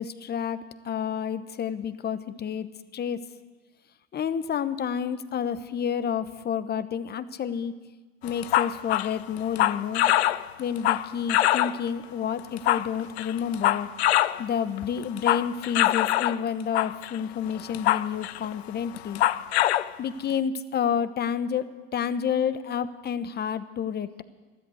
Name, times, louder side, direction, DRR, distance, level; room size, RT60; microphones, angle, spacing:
voice 1, 0.0-2.7 2.9-3.3 4.1-7.7 8.2-10.0 10.6-13.9 14.4-19.2 20.0-24.2, left 8 dB, 30° left, 14 dB, 0.9 m, -29 dB
sound 1, 8.3-11.9 12.4-14.4 14.8-16.4 16.7-17.2 17.6-18.5 18.9-19.9, left 13 dB, 85° left, 0.5 m, -24 dB
13.5 x 12.5 x 7.9 m, 1.3 s
hypercardioid pair, 80°, 31 cm